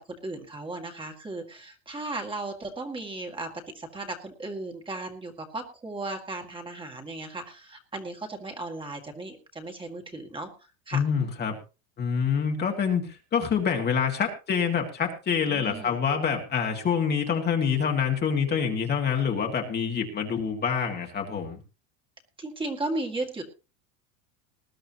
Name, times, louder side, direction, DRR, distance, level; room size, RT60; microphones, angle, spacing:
voice 1, 0.2-3.5 3.7-10.5 10.9-11.0 15.5-16.0 22.4-23.4, right 2 dB, 10° right, 3 dB, 2.1 m, -35 dB
voice 2, 10.9-11.6 12.0-21.6, left 7 dB, 25° left, 2 dB, 2.0 m, -26 dB
20.0 x 11.0 x 2.9 m, 0.32 s
supercardioid pair, 150°, 41 cm